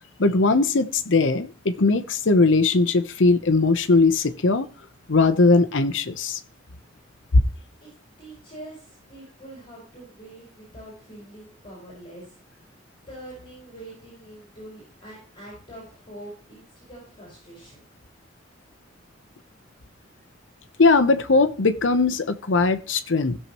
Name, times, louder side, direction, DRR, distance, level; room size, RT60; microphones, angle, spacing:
voice 1, 0.2-4.7 5.1-6.4 20.8-23.4, left 3 dB, 80° left, 0.8 m, -20 dB
voice 2, 8.2-12.7 13.1-17.8, right 1 dB, 30° left, 5.5 m, -44 dB
16.5 x 6.7 x 3.0 m
head